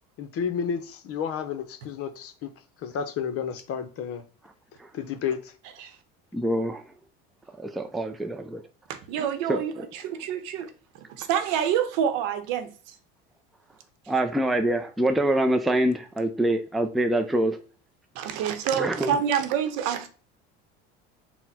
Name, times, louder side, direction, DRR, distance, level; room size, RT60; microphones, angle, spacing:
voice 1, 0.2-2.5 2.8-4.2 4.9-5.5, left 7 dB, 50° left, 0.7 m, -31 dB
voice 2, 6.3-6.8 7.6-8.6 9.5-9.9 14.1-17.6 18.8-19.2, right 1 dB, ahead, 0.4 m, -25 dB
voice 3, 8.9-12.9 18.1-20.1, right 8 dB, 75° right, 0.8 m, -28 dB
4.1 x 2.2 x 4.2 m
supercardioid pair, 100°, 30 cm